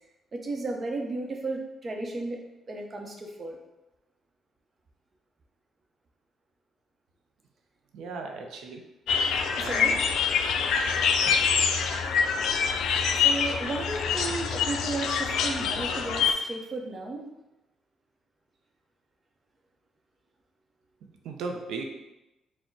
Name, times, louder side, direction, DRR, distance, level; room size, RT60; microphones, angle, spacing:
voice 1, 0.3-2.4 2.7-3.6 9.6-10.0 13.1-17.3, right 2 dB, 35° right, 1 dB, 0.8 m, -34 dB
voice 2, 7.9-8.8 9.6-10.0 11.3-11.4 21.2-21.8, right 4 dB, 85° right, 3 dB, 0.6 m, -36 dB
sound 1, 9.1-16.3, left 6 dB, 85° left, 0.4 m, -25 dB
4.5 x 2.2 x 4.5 m, 0.99 s
cardioid pair, 90°, 0 cm